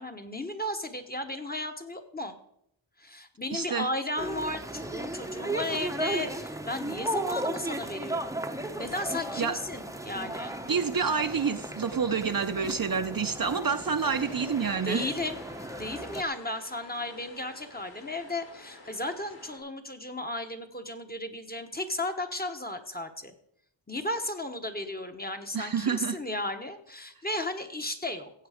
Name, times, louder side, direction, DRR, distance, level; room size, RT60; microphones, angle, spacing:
voice 1, 0.0-2.4 3.0-8.3 8.8-10.5 14.8-15.4 15.8-23.3 23.9-28.3, left 1 dB, 20° left, 6 dB, 1.1 m, -34 dB
voice 2, 3.5-3.9 9.4-9.6 10.7-15.1 25.5-26.2, right 6 dB, 45° right, 8 dB, 0.7 m, -28 dB
sound 1, 4.2-16.2, right 1 dB, 5° right, 0.8 m, -35 dB
sound 2, 14.1-19.6, left 3 dB, 60° left, 4.2 m, -50 dB
16.0 x 8.0 x 5.0 m, 0.74 s
wide cardioid pair, 105°, 49 cm